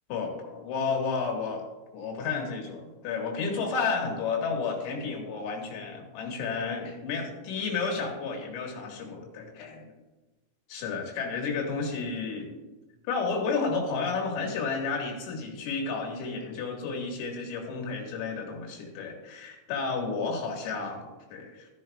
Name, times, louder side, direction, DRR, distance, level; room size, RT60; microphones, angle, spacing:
voice 1, 0.1-1.7 1.9-9.9 10.7-12.6 13.1-21.7, left 4 dB, 90° left, 0 dB, 4.5 m, -32 dB
14.0 x 10.5 x 2.4 m, 1.1 s
omnidirectional pair, 5.8 m